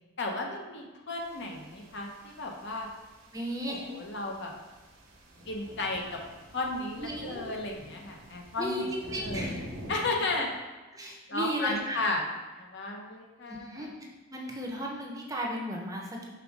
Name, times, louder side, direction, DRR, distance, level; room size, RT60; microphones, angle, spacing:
voice 1, 0.2-2.9 3.6-4.5 5.5-6.2 6.5-9.5 9.9-10.5 11.3-12.2 12.6-13.9, left 2 dB, 55° left, 1 dB, 0.9 m, -34 dB
sound 1, 1.2-10.1, equal, 75° right, 1.2 m, -46 dB
voice 2, 3.3-3.9 7.0-7.4 8.6-9.6 10.9-12.0 13.5-13.9 14.3-16.3, right 1 dB, 15° right, -1 dB, 0.8 m, -35 dB
5.7 x 3.6 x 4.8 m, 1.2 s
head